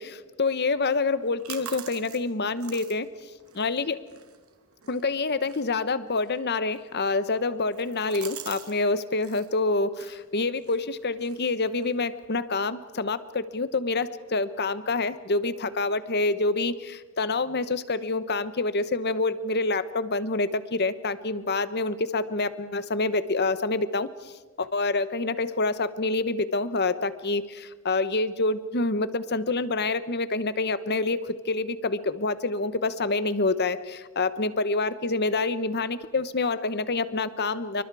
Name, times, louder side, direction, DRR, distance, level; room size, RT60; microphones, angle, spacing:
voice 1, 0.0-3.1 3.5-4.0 4.9-24.3 24.6-37.8, left 3 dB, 50° left, 14 dB, 1.0 m, -27 dB
sound 1, 1.0-8.8 9.0-9.5 9.9-12.3, right 9 dB, 75° right, 2.6 m, -46 dB
28.0 x 24.0 x 4.8 m, 1.4 s
head